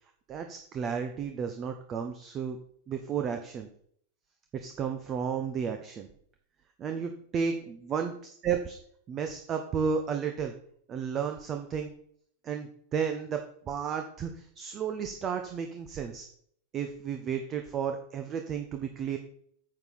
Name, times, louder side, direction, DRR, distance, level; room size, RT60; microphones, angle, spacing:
voice 1, 0.3-2.6 2.9-3.7 4.5-6.1 6.8-8.8 9.1-10.5 10.9-11.9 12.4-13.4 13.7-16.2 16.7-19.2, right 7 dB, 30° right, 5 dB, 1.0 m, -33 dB
9.4 x 7.0 x 5.8 m, 0.64 s
figure-of-eight pair, 90°, 0 cm